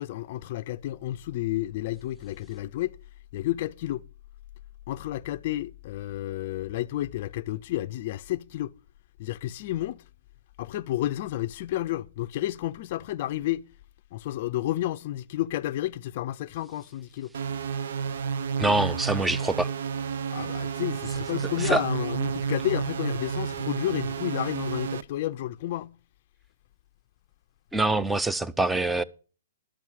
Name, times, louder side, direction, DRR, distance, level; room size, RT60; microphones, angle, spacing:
voice 1, 0.0-3.0 3.3-4.0 4.9-8.7 9.2-10.0 10.6-13.7 14.1-17.3 20.3-25.9, left 14 dB, 45° left, 0.5 m, -31 dB
sound 1, 17.3-25.0, right 6 dB, 65° right, 0.6 m, -31 dB
voice 2, 18.6-19.7 21.6-21.8 27.7-29.0, right 2 dB, 5° right, 0.6 m, -25 dB
12.0 x 6.1 x 7.4 m
hypercardioid pair, 135°, 0 cm